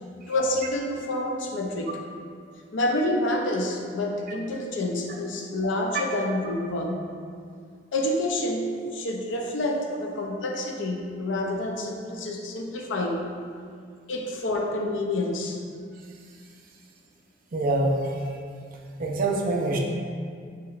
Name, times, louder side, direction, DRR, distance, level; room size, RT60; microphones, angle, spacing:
voice 1, 0.3-1.9 2.7-7.0 7.9-13.3 14.1-15.6, left 1 dB, 80° left, 1 dB, 0.5 m, -28 dB
voice 2, 17.5-18.2 19.0-19.8, right 2 dB, 50° right, 0 dB, 0.5 m, -25 dB
5.7 x 3.0 x 2.4 m, 2.2 s
head